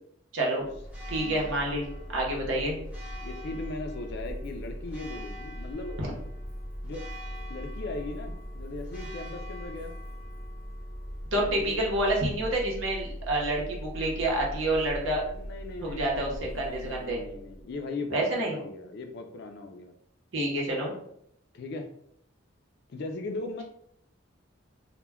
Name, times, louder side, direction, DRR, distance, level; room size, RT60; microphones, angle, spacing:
voice 1, 0.3-0.6 1.1-2.8 6.0-6.1 11.3-15.2 15.8-17.2 18.1-18.6 20.3-20.9, right 1 dB, 70° right, -1 dB, 0.8 m, -28 dB
Church bell, 0.6-17.8, equal, 5° right, 0.5 m, -40 dB
voice 2, 1.1-1.5 3.2-6.0 6.8-7.0 7.5-9.9 11.4-11.8 15.3-19.9 21.5-21.9 22.9-23.6, left 2 dB, 55° left, 5 dB, 0.3 m, -38 dB
2.2 x 2.1 x 3.4 m, 0.71 s
head